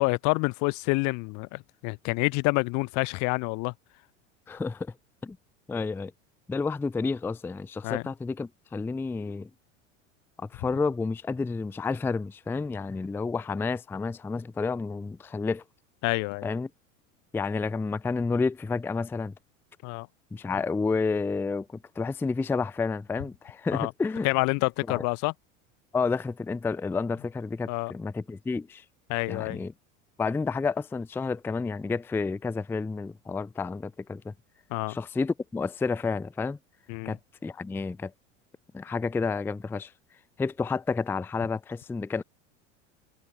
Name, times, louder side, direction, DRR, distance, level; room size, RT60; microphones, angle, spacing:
voice 1, 0.0-3.7 7.8-8.0 16.0-16.5 19.8-20.1 23.7-23.9 24.2-25.3 27.7-27.9 29.1-29.6 34.7-35.0 36.9-37.2, left 29 dB, 50° left, 0.6 m, -27 dB
voice 2, 4.5-4.9 5.2-5.4 5.7-6.1 6.5-9.5 10.4-15.6 16.4-16.7 17.3-19.3 20.3-21.7 22.0-24.3 24.9-25.0 25.9-28.8 29.3-29.7 30.2-34.3 34.9-36.6 37.1-38.1 38.7-39.9 40.4-42.2, left 4 dB, 5° left, 0.4 m, -30 dB
hypercardioid pair, 90°, 37 cm